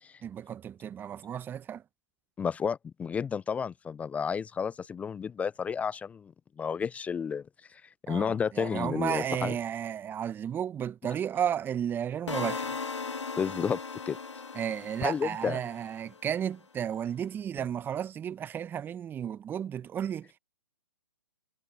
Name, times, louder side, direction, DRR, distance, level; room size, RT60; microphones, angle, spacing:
voice 1, 0.2-1.8 8.1-12.8 14.5-20.4, right 9 dB, 15° right, 1.1 m, -33 dB
voice 2, 2.4-6.3 6.6-7.4 7.7-7.8 8.1-9.5 13.4-13.8 14.1-14.2 15.0-15.6, left 6 dB, 10° left, 0.5 m, -31 dB
sound 1, 12.3-16.3, left 4 dB, 80° left, 1.6 m, -38 dB
figure-of-eight pair, 125°, 15 cm